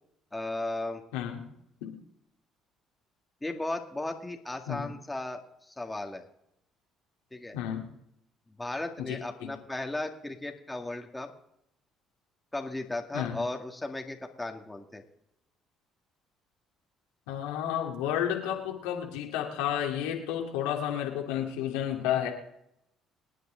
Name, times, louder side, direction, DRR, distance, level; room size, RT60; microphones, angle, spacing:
voice 1, 0.3-1.0 3.4-6.3 7.3-7.6 8.6-11.3 12.5-15.0, left 2 dB, 10° left, 4 dB, 2.0 m, -36 dB
voice 2, 1.1-1.4 1.8-1.9 4.7-4.9 7.5-7.9 9.0-9.5 13.1-13.4 17.3-22.3, left 10 dB, 85° left, 1 dB, 2.4 m, -31 dB
25.5 x 9.3 x 3.9 m, 0.79 s
supercardioid pair, 70°, 0 cm